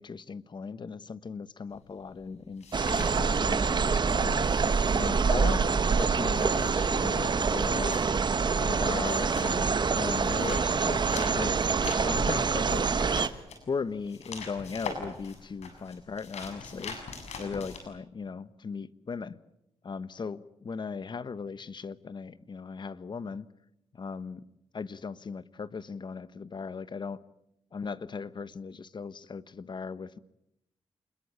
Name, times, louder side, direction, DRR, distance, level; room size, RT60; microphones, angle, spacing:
voice 1, 0.0-2.7 2.9-4.5 4.9-5.7 5.9-8.0 8.6-13.0 13.7-17.0 17.4-19.4 19.8-23.5 23.9-24.4 24.7-27.2 27.7-30.2, left 5 dB, 45° left, 15 dB, 1.2 m, -38 dB
sound 1, 1.7-3.9 4.1-17.8, left 5 dB, 85° left, 7.2 m, -43 dB
sound 2, 2.7-13.3, right 5 dB, 45° right, 1.3 m, -26 dB
27.5 x 21.5 x 8.8 m, 0.81 s
cardioid pair, 95°, 11 cm